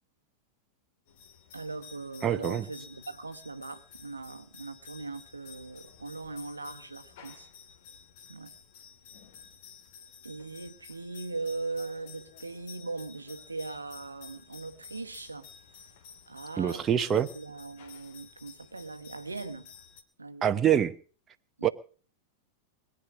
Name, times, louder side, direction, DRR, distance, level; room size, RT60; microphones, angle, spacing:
sound 1, 1.1-20.0, left 7 dB, 55° left, 2.5 m, -52 dB
voice 1, 1.5-7.5 8.3-8.5 10.2-15.5 16.3-17.0 17.3-19.7 20.2-20.6 21.6-21.7, right 3 dB, 80° right, 1.0 m, -40 dB
voice 2, 2.2-2.7 16.6-17.3 20.4-20.9 21.6-21.7, right 9 dB, 25° right, 0.9 m, -25 dB
22.0 x 9.8 x 6.1 m
figure-of-eight pair, 90°, 0 cm